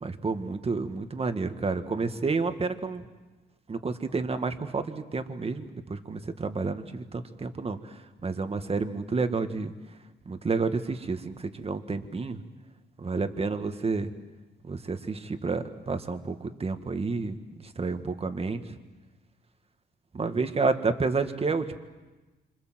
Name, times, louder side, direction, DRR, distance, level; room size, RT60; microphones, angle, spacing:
voice 1, 0.0-3.0 3.7-9.7 10.3-12.4 13.0-14.1 14.6-18.6 20.1-21.8, right 4 dB, 30° right, 7 dB, 2.0 m, -30 dB
27.5 x 26.5 x 7.7 m, 1.2 s
cardioid pair, 90°, 20 cm